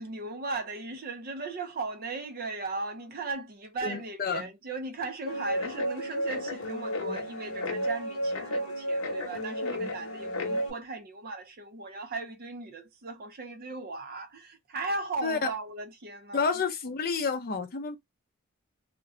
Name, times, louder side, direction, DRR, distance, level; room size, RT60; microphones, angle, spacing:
voice 1, 0.0-16.5, right 3 dB, 45° right, 0.5 m, -37 dB
voice 2, 3.8-4.5 15.2-15.4 16.3-18.0, left 5 dB, 45° left, 0.6 m, -30 dB
Guitar, 5.3-10.7, equal, 70° left, 0.8 m, -32 dB
2.5 x 2.2 x 3.7 m
head